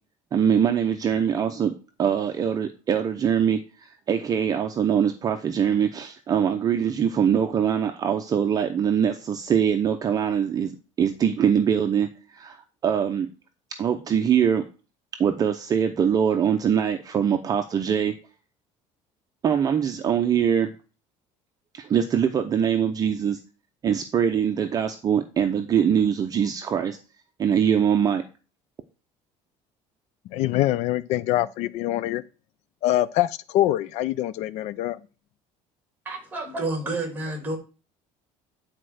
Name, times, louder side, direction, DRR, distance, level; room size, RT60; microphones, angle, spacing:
voice 1, 0.3-1.7 2.0-13.3 13.8-14.6 15.2-18.1 19.4-20.7 21.7-23.4 23.8-27.0 27.4-28.2, right 8 dB, 30° right, 0.7 m, -23 dB
voice 2, 30.3-32.2 32.8-35.0, left 14 dB, 60° left, 0.4 m, -24 dB
voice 3, 36.0-37.6, right 2 dB, 15° right, 2.7 m, -29 dB
10.0 x 4.4 x 6.4 m
cardioid pair, 155°, 13 cm